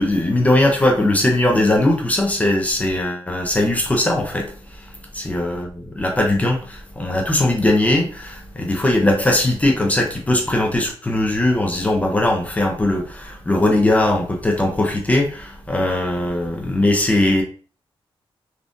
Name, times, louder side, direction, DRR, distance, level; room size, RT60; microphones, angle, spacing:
voice 1, 0.0-4.5 4.8-4.9 5.1-17.4, left 1 dB, 15° left, 0 dB, 0.5 m, -19 dB
3.5 x 2.4 x 2.5 m, 0.40 s
wide cardioid pair, 175°, 10 cm